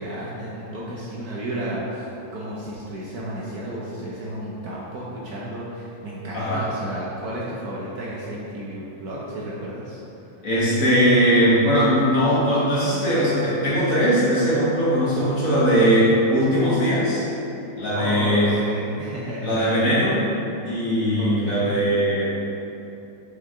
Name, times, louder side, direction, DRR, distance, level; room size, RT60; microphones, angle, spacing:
voice 1, 0.0-10.0 17.9-19.5 21.2-21.7, right 1 dB, 60° right, -5 dB, 1.1 m, -32 dB
voice 2, 6.3-6.6 10.4-17.3 17.8-18.5 19.4-20.2 20.6-22.3, equal, 45° left, -8 dB, 1.6 m, -20 dB
5.8 x 5.7 x 3.6 m, 2.9 s
omnidirectional pair, 2.2 m